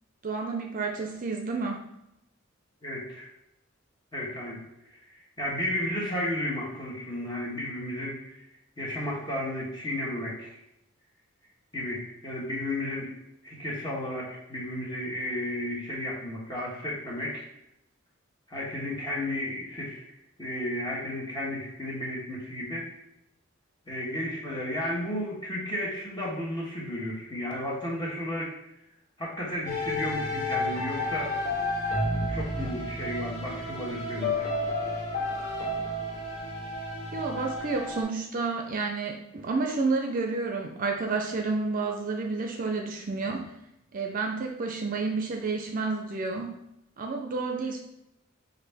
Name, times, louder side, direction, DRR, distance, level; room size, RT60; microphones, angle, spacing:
voice 1, 0.2-1.8 37.1-43.5 43.9-46.6 47.0-47.8, right 3 dB, 40° right, 3 dB, 0.5 m, -30 dB
voice 2, 2.8-3.3 4.1-4.6 5.4-8.2 8.8-10.6 11.7-13.1 13.4-17.5 18.5-20.1 20.4-22.9 23.9-28.5 29.2-31.3 32.3-34.5, left 1 dB, 20° left, -5 dB, 1.3 m, -33 dB
sound 1, 29.6-38.0, left 1 dB, 40° left, 1.6 m, -31 dB
5.8 x 2.6 x 3.4 m, 0.84 s
head